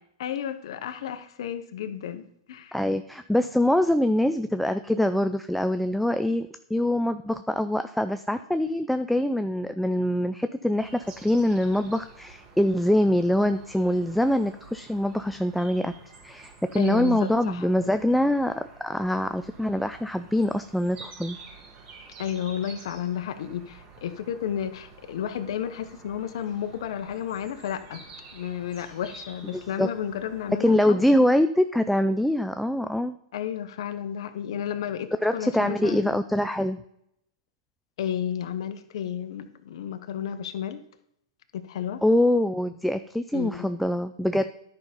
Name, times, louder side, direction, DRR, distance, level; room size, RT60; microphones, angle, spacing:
voice 1, 0.2-2.8 16.7-17.7 22.2-28.1 28.3-31.0 33.3-36.1 38.0-40.8 41.5-42.0 43.3-43.7, left 9 dB, 65° left, 9 dB, 0.9 m, -32 dB
voice 2, 2.7-15.9 16.2-21.4 29.5-29.9 30.6-33.2 35.2-36.8 42.0-44.5, left 1 dB, ahead, 9 dB, 0.3 m, -24 dB
sound 1, 10.8-30.7, right 4 dB, 40° right, 3.4 m, -49 dB
10.5 x 5.6 x 5.2 m, 0.75 s
hypercardioid pair, 135°, 3 cm